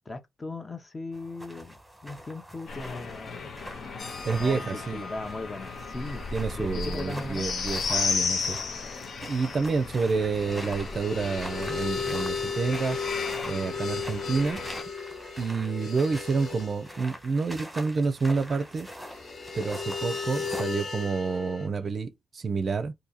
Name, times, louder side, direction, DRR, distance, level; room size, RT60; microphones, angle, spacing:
voice 1, 0.1-3.5 4.3-6.2 6.5-7.5, left 3 dB, 25° left, 0.6 m, -38 dB
sound 1, 1.1-20.6, equal, ahead, 1.2 m, -44 dB
sound 2, 2.7-14.8, left 5 dB, 65° left, 0.7 m, -35 dB
sound 3, 4.0-6.2 6.5-6.6 10.2-17.0 18.9-21.7, left 5 dB, 45° left, 1.1 m, -36 dB
voice 2, 4.2-5.0 6.3-8.6 9.2-13.0 13.4-14.6 15.4-18.9 19.6-22.9, right 4 dB, 45° right, 0.4 m, -29 dB
2.7 x 2.7 x 3.9 m
wide cardioid pair, 125°, 0 cm